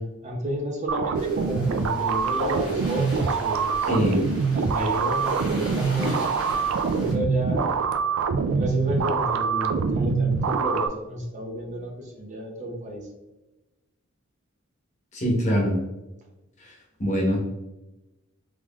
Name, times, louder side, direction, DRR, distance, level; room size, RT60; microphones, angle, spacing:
voice 1, 0.0-3.8 4.5-7.8 8.5-13.1, equal, 35° right, 1 dB, 0.6 m, -31 dB
sound 1, 0.9-10.9, right 5 dB, 80° right, 0.3 m, -25 dB
sound 2, 1.1-7.1, equal, 5° right, 1.3 m, -38 dB
voice 2, 3.9-4.3 15.1-15.8 16.6-16.7 17.0-17.5, equal, 35° left, -1 dB, 0.9 m, -23 dB
3.6 x 3.1 x 2.3 m, 1.0 s
head